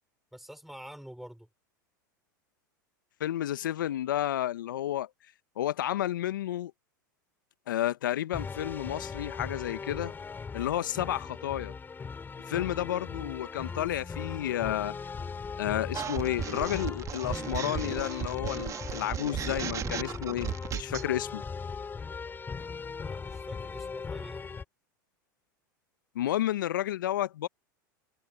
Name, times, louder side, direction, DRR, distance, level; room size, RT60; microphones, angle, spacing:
voice 1, 0.3-1.5 23.0-24.4, equal, ahead, 6.2 m, -47 dB
voice 2, 3.2-5.1 5.6-6.7 7.7-10.1 10.5-11.7 12.5-15.0 15.6-21.4 26.1-27.5, left 12 dB, 75° left, 1.3 m, -31 dB
sound 1, 8.3-24.6, left 5 dB, 20° left, 3.9 m, -39 dB
sound 2, 15.9-21.1, right 9 dB, 30° right, 2.1 m, -35 dB
hypercardioid pair, 95°, 11 cm